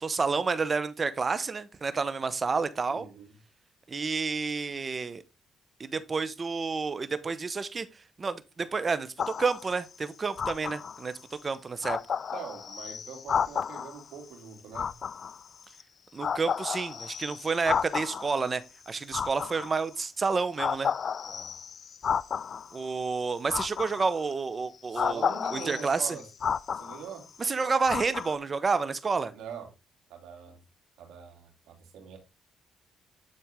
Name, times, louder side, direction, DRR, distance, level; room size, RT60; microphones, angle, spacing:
voice 1, 0.0-3.1 3.9-5.2 5.8-7.9 8.2-12.0 16.1-20.9 22.7-26.2 27.4-29.3, right 4 dB, 35° right, 0.9 m, -30 dB
voice 2, 2.9-3.4 12.3-14.9 21.2-21.5 24.9-26.3 26.7-27.3 29.3-29.7 30.1-30.6 31.0-32.2, right 7 dB, 85° right, 2.8 m, -43 dB
sound 1, 9.2-9.8 10.4-11.1 11.5-11.6 11.8-14.0 14.7-15.8 16.2-18.4 19.0-20.0 20.6-22.8 23.5-24.3 24.9-27.3 27.9-28.4, left 7 dB, 50° left, 0.4 m, -32 dB
10.0 x 4.6 x 3.6 m
cardioid pair, 90°, 0 cm